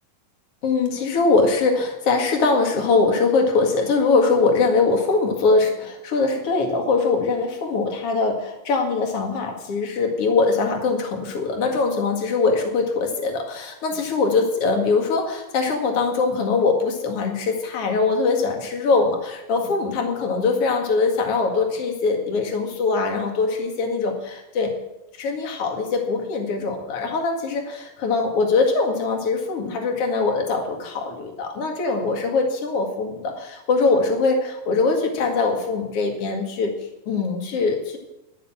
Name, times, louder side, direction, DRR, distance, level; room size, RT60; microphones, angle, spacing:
voice 1, 0.6-24.7 25.2-36.7 37.1-38.0, left 4 dB, 45° left, 3 dB, 2.4 m, -22 dB
12.0 x 7.0 x 8.8 m, 0.94 s
omnidirectional pair, 4.3 m